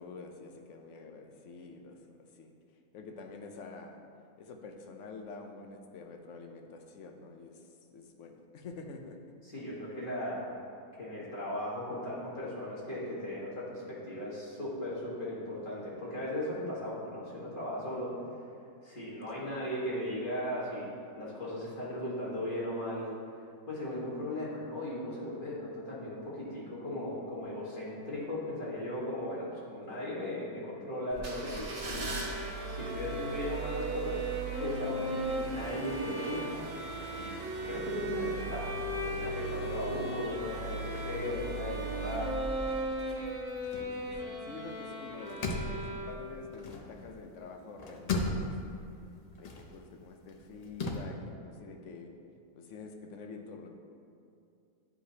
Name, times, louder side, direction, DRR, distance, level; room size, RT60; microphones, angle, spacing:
voice 1, 0.0-2.5 2.9-4.0 4.4-7.6 7.9-9.2 19.3-19.5 29.8-30.1 37.6-37.9 43.7-48.8 49.4-52.2 52.5-53.8, left 4 dB, 65° left, 4 dB, 0.9 m, -47 dB
voice 2, 9.4-10.6 10.9-18.1 18.8-23.1 23.7-32.1 32.6-34.2 34.6-36.6 37.1-37.4 37.6-42.4, left 1 dB, 35° left, -7 dB, 1.5 m, -37 dB
sound 1, 31.1-43.6 44.0-44.1, right 3 dB, 70° right, 1.7 m, -41 dB
sound 2, 31.5-46.5, right 1 dB, 50° right, 1.8 m, -38 dB
sound 3, 43.1-44.8 45.1-47.3 47.6-51.0, left 3 dB, 90° left, 0.3 m, -37 dB
10.0 x 4.8 x 2.8 m, 2.5 s
omnidirectional pair, 1.5 m